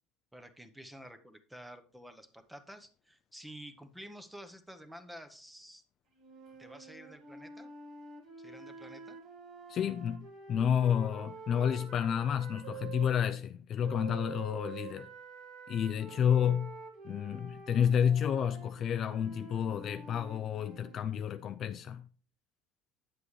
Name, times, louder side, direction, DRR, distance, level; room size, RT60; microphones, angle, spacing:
voice 1, 0.3-5.8 6.6-7.7 8.4-9.2, equal, 5° right, 0.8 m, -50 dB
sound 1, 6.2-13.1 13.8-21.0, right 5 dB, 50° right, 1.6 m, -48 dB
voice 2, 9.7-10.2 10.5-15.1 15.7-16.7 17.0-22.0, left 8 dB, 35° left, 0.4 m, -30 dB
8.4 x 7.7 x 3.1 m
cardioid pair, 145°, 0 cm